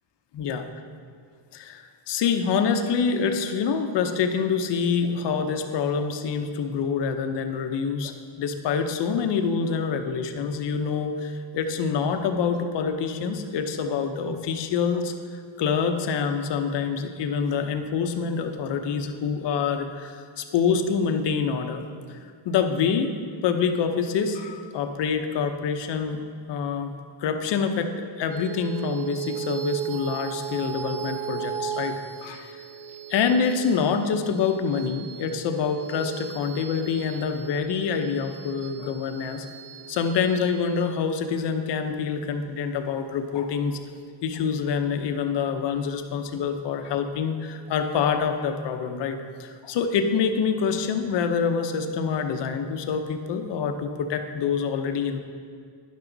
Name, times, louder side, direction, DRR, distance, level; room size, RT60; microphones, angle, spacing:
voice 1, 0.3-0.6 1.5-15.1 15.6-22.2 22.4-23.1 23.4-26.2 26.5-26.9 27.2-27.9 28.2-32.6 33.1-39.5 39.9-43.8 44.2-55.2, left 6 dB, 60° left, 6 dB, 0.9 m, -26 dB
sound 1, 28.3-43.1, right 9 dB, 50° right, 0.9 m, -37 dB
12.0 x 10.5 x 4.0 m, 2.1 s
cardioid pair, 175°, 49 cm